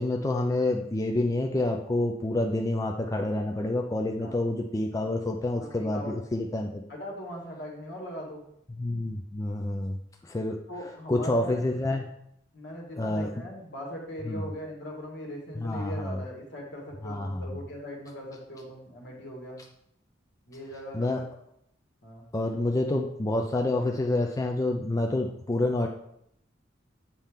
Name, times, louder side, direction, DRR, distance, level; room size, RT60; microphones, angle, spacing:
voice 1, 0.0-6.8 8.8-10.0 10.2-10.6 11.1-12.0 13.0-13.3 14.3-14.5 15.6-16.2 17.0-17.5 20.9-21.2 22.3-25.9, left 2 dB, 20° left, 2 dB, 0.4 m, -28 dB
voice 2, 5.6-6.1 6.9-8.4 10.7-11.6 12.5-19.6 20.5-21.2 22.0-22.2, equal, 65° left, -1 dB, 1.7 m, -40 dB
7.4 x 4.2 x 3.6 m, 0.75 s
head